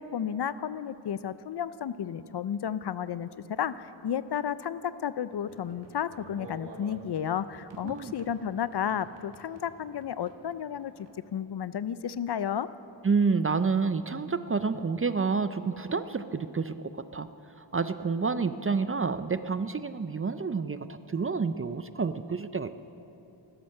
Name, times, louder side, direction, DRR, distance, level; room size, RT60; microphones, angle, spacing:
voice 1, 0.0-12.7, left 9 dB, 60° left, 15 dB, 0.5 m, -32 dB
sound 1, 5.3-11.2, right 2 dB, 60° right, 1.6 m, -51 dB
voice 2, 13.0-17.3 17.6-22.7, right 5 dB, 30° right, 12 dB, 0.4 m, -29 dB
15.5 x 13.0 x 6.5 m, 3.0 s
wide cardioid pair, 135°, 46 cm